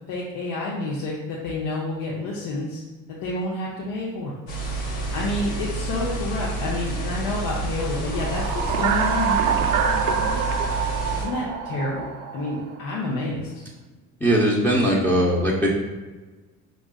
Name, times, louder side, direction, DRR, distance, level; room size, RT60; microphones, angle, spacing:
voice 1, 0.1-2.8 3.1-4.3 5.1-9.7 11.1-13.6, left 2 dB, 60° left, -5 dB, 0.8 m, -29 dB
sound 1, 4.5-11.2, right 2 dB, 80° left, 1.1 m, -29 dB
sound 2, 8.1-12.7, right 6 dB, 50° right, 0.4 m, -25 dB
voice 2, 14.2-15.7, equal, 5° left, -5 dB, 0.6 m, -20 dB
5.0 x 2.4 x 2.3 m, 1.3 s
hypercardioid pair, 65°, 42 cm